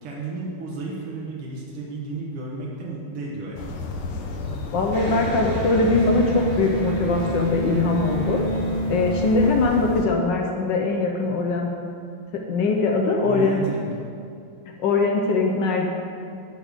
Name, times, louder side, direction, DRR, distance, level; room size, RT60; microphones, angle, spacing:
voice 1, 0.0-3.9 13.2-13.9, right 2 dB, 85° right, -4 dB, 2.1 m, -32 dB
sound 1, 3.6-10.1, left 2 dB, 85° left, 1.6 m, -31 dB
voice 2, 4.7-8.4 8.9-11.7 12.3-13.6 14.8-15.9, left 3 dB, 70° left, 1 dB, 1.2 m, -22 dB
Electric guitar, 4.9-10.4, right 1 dB, 60° right, 2.5 m, -29 dB
9.7 x 3.5 x 6.5 m, 2.4 s
omnidirectional pair, 2.4 m